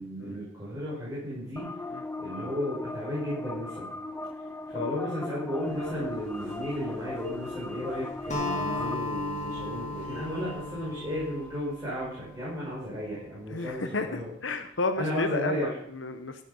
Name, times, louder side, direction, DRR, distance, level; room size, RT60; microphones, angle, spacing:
voice 1, 0.0-1.7 2.2-3.9 4.7-14.3 14.9-15.7, equal, 20° right, -9 dB, 6.3 m, -34 dB
sound 1, 1.6-8.9, left 2 dB, 10° left, 0.5 m, -38 dB
sound 2, 5.5-11.5, right 1 dB, 35° right, 4.8 m, -52 dB
Acoustic guitar, 8.3-12.8, left 2 dB, 35° left, 2.5 m, -35 dB
voice 2, 13.5-16.4, left 3 dB, 80° left, 8 dB, 1.0 m, -32 dB
16.0 x 8.5 x 5.5 m, 0.69 s
head